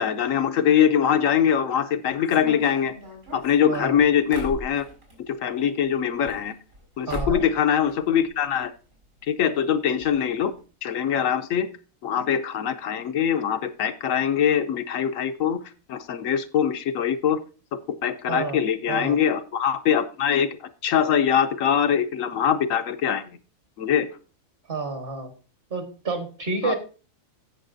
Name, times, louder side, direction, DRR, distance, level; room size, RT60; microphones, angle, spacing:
voice 1, 0.0-3.0 3.3-4.8 5.3-6.5 7.0-8.7 9.3-10.5 10.8-11.7 12.0-15.6 15.9-17.4 18.0-20.5 20.8-23.2 23.8-24.1 26.6-26.7, left 8 dB, 70° left, 9 dB, 1.1 m, -23 dB
sound 1, 2.3-5.2 6.0-6.8 7.1-7.6 7.9-8.7 8.9-9.0 9.2-9.3 10.0-10.1 10.4-10.6, equal, 65° right, 4.9 m, -37 dB
voice 2, 3.7-4.0 7.1-7.4 18.3-18.6 18.9-19.2 24.7-25.3 25.7-26.7, right 4 dB, 40° right, 4 dB, 1.6 m, -29 dB
15.5 x 6.6 x 2.6 m, 0.35 s
omnidirectional pair, 1.4 m